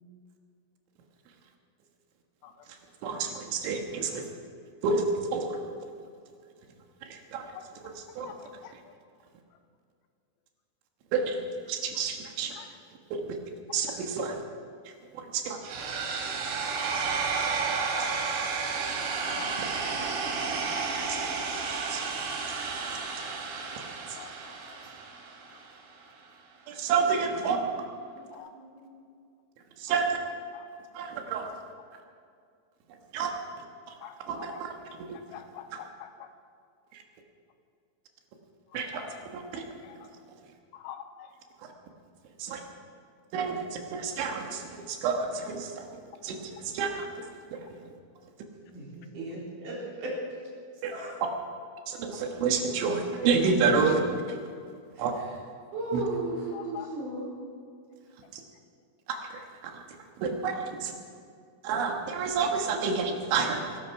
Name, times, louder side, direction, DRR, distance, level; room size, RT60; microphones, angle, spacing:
voice 1, 3.0-4.3 4.8-5.6 7.0-7.5 7.8-8.3 11.1-11.4 11.7-12.6 13.1-13.4 13.7-14.4 14.9-15.6 18.0-18.1 21.9-22.0 22.6-23.0 24.1-24.2 26.7-27.6 29.8-30.2 30.9-31.5 33.1-33.3 34.3-34.7 35.1-35.2 35.7-35.9 36.9-37.0 38.7-39.7 42.4-42.6 43.3-45.9 46.2-47.1 47.5-47.6 50.8-50.9 51.9-54.0 54.3-54.4 55.0-55.1 55.9-56.0 58.3-58.4 59.3-59.8 60.2-60.9 61.6-63.8, right 5 dB, 70° right, 3 dB, 3.6 m, -29 dB
sound 1, 15.6-25.6, right 5 dB, 90° right, 4.8 m, -32 dB
voice 2, 17.8-18.1 18.4-18.5 19.3-19.6 24.2-24.8 28.3-28.5 30.5-30.6 34.0-34.6 35.3-36.1 39.0-39.1 39.5-39.6 40.8-41.0 56.5-56.9, left 11 dB, 80° left, 8 dB, 3.0 m, -44 dB
voice 3, 28.1-28.9 48.7-50.2 50.9-51.1 54.9-55.0 55.7-57.3, right 2 dB, 40° right, -5 dB, 4.9 m, -36 dB
22.0 x 12.0 x 4.7 m, 2.3 s
omnidirectional pair, 6.0 m